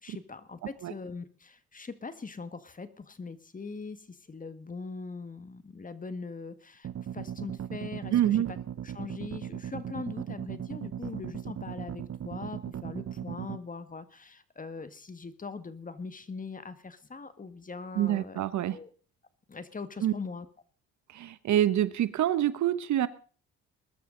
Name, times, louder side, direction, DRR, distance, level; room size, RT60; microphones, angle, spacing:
voice 1, 0.0-6.9 7.1-8.6 8.8-18.4 18.7-18.9 19.5-20.5, left 4 dB, 25° left, 12 dB, 1.7 m, -41 dB
sound 1, 6.8-13.6, right 9 dB, 50° right, 0.9 m, -38 dB
voice 2, 8.1-8.5 18.0-18.8 20.0-20.1 21.1-23.1, right 12 dB, 70° right, 15 dB, 1.2 m, -26 dB
21.0 x 12.5 x 3.9 m, 0.40 s
cardioid pair, 90°, 30 cm